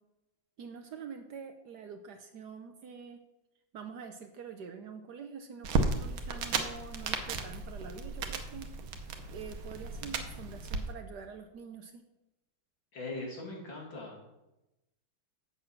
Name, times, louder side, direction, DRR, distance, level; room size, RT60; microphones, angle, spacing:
voice 1, 0.6-3.2 3.7-8.7 9.3-12.0, right 6 dB, 65° right, 7 dB, 1.1 m, -46 dB
sound 1, 5.6-10.8, right 3 dB, 80° right, 1.8 m, -34 dB
voice 2, 12.9-14.3, left 2 dB, 65° left, -2 dB, 3.1 m, -41 dB
7.8 x 7.5 x 5.9 m, 0.95 s
omnidirectional pair, 2.2 m